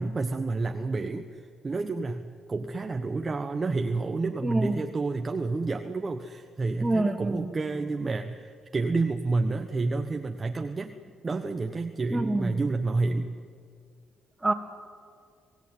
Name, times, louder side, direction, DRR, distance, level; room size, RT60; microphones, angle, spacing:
voice 1, 0.0-10.9 11.2-13.3, right 3 dB, 30° right, 5 dB, 1.2 m, -29 dB
voice 2, 4.4-4.8 6.8-7.9 12.1-12.6 14.4-14.5, right 2 dB, 15° right, 4 dB, 2.6 m, -27 dB
27.0 x 17.0 x 9.5 m, 2.2 s
cardioid pair, 90°, 0 cm